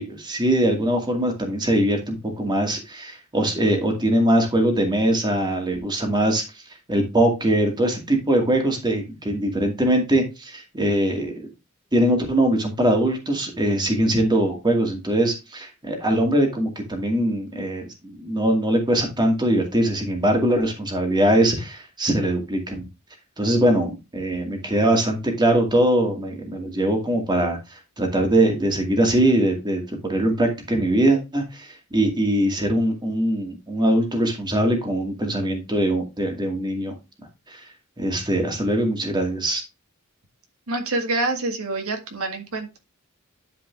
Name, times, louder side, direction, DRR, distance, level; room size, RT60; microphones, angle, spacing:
voice 1, 0.0-6.4 6.9-11.5 11.9-22.9 23.4-36.9 37.5-37.6 38.0-39.6, right 1 dB, 20° right, 2 dB, 2.3 m, -22 dB
voice 2, 40.7-42.8, right 2 dB, 80° right, 4 dB, 1.8 m, -26 dB
10.5 x 5.2 x 3.4 m, 0.25 s
head